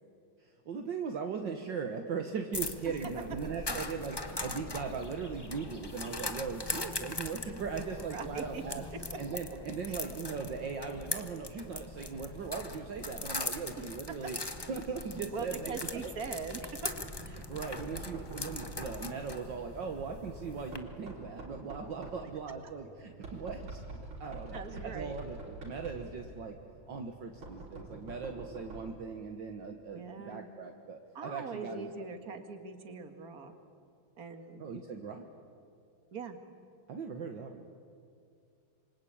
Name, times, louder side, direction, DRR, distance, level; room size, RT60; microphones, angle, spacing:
voice 1, 0.4-8.8 9.2-14.4 14.7-15.9 17.3-23.8 24.2-26.6 26.9-32.1 34.6-35.3 36.9-37.6, right 5 dB, 60° right, 4 dB, 2.0 m, -39 dB
sound 1, 2.5-20.8, left 2 dB, 15° left, 0.9 m, -41 dB
voice 2, 8.1-8.6 9.9-10.0 15.3-16.9 24.5-25.2 29.9-30.5 31.1-33.5 34.2-34.6 36.1-36.4, right 5 dB, 45° right, 6 dB, 2.4 m, -41 dB
Knock, 16.8-29.0, right 2 dB, 80° right, 4.8 m, -47 dB
27.0 x 24.5 x 8.7 m, 2.4 s
omnidirectional pair, 2.3 m